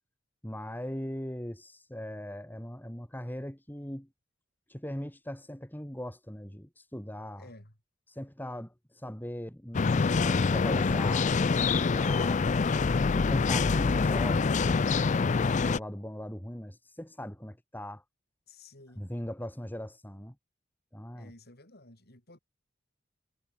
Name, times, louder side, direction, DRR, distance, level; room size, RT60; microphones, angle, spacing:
voice 1, 0.4-4.1 4.7-7.5 8.1-12.5 13.2-14.8 15.2-15.3 15.7-18.0 19.0-20.4 20.9-21.3, equal, 10° left, 3.6 m, -40 dB
voice 2, 7.4-7.7 18.5-19.0 21.1-22.4, left 2 dB, 55° left, 5.9 m, -52 dB
sound 1, 9.7-15.8, left 4 dB, 40° left, 0.4 m, -25 dB
head